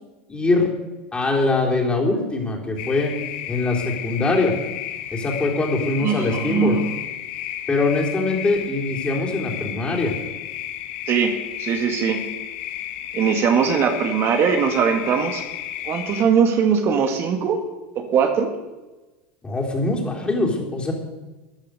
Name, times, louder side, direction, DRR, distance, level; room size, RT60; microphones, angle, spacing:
voice 1, 0.3-0.7 1.1-3.1 3.5-4.5 5.1-6.8 7.7-10.1 19.4-20.9, left 3 dB, 15° left, -1 dB, 3.9 m, -22 dB
sound 1, 2.8-16.2, left 12 dB, 75° left, 1.5 m, -33 dB
voice 2, 6.0-6.8 11.1-12.2 13.1-15.5 15.8-17.6 18.0-18.5, right 6 dB, 45° right, 5 dB, 1.8 m, -20 dB
15.0 x 10.5 x 6.7 m, 1.1 s
supercardioid pair, 115°, 6 cm